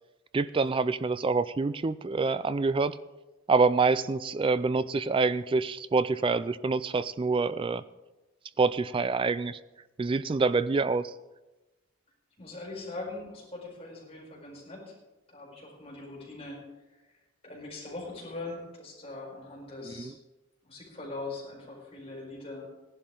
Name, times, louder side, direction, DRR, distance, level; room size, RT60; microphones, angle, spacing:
voice 1, 0.3-3.0 3.5-7.8 8.6-9.6 10.0-11.1 19.8-20.1, right 4 dB, 25° right, 15 dB, 0.3 m, -26 dB
voice 2, 12.4-14.9 15.3-16.6 16.9-17.2 17.4-20.1 20.6-22.7, left 2 dB, 30° left, -3 dB, 5.1 m, -41 dB
17.5 x 11.0 x 3.8 m, 1.1 s
head